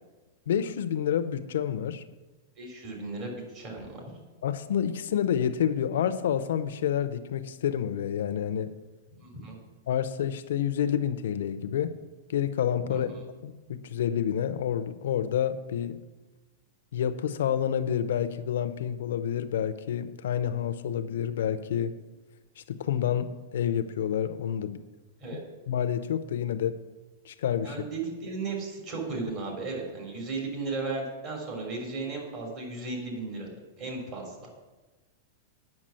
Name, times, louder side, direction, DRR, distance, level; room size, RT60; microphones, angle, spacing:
voice 1, 0.5-2.0 4.4-8.7 9.9-12.0 12.3-13.1 13.4-16.0 16.9-21.9 22.6-24.8 25.7-26.8 27.3-27.8, left 9 dB, 80° left, 11 dB, 0.7 m, -28 dB
voice 2, 2.6-4.0 9.1-9.6 12.8-13.2 25.2-25.4 27.6-33.5 33.8-34.5, right 3 dB, 40° right, 0 dB, 3.2 m, -35 dB
8.9 x 6.0 x 7.5 m, 1.2 s
supercardioid pair, 150°, 0 cm